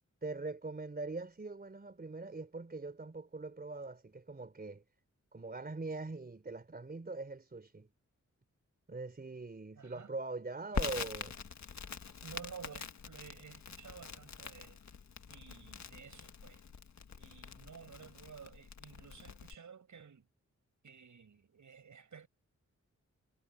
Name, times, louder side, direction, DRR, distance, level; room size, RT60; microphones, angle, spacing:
voice 1, 0.2-4.8 5.3-7.9 8.9-11.4, right 3 dB, 30° right, 3.7 m, -42 dB
voice 2, 9.8-10.1 12.2-14.8 15.3-16.6 17.2-20.3 20.8-22.3, right 6 dB, 75° right, 5.2 m, -53 dB
Crackle, 10.7-19.5, left 6 dB, 65° left, 1.5 m, -44 dB
wide cardioid pair, 140°, 30 cm